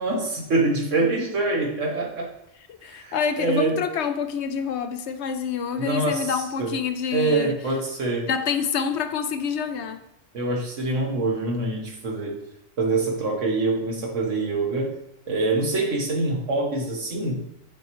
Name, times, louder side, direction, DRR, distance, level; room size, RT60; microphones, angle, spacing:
voice 1, 0.0-2.3 2.8-3.7 5.8-6.7 7.1-8.3 10.3-12.4 12.8-14.9 15.3-17.4, right 3 dB, 75° right, 1.6 m, -25 dB
voice 2, 2.8-7.5 8.2-10.0, left 6 dB, 70° left, 0.8 m, -27 dB
7.1 x 5.4 x 3.0 m
omnidirectional pair, 1.3 m